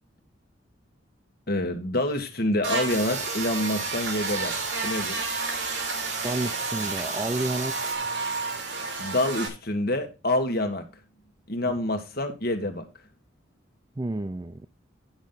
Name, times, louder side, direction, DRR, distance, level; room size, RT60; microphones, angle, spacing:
voice 1, 1.5-4.5 4.8-5.2 9.0-10.8 11.5-12.9, left 1 dB, 50° left, 1.7 m, -27 dB
Buzz, 2.6-9.5, right 3 dB, 65° right, 2.9 m, -31 dB
sound 1, 2.9-8.0, right 5 dB, 40° right, 2.1 m, -35 dB
voice 2, 6.2-7.8 14.0-14.7, right 2 dB, 20° right, 0.4 m, -30 dB
10.5 x 6.2 x 4.0 m
head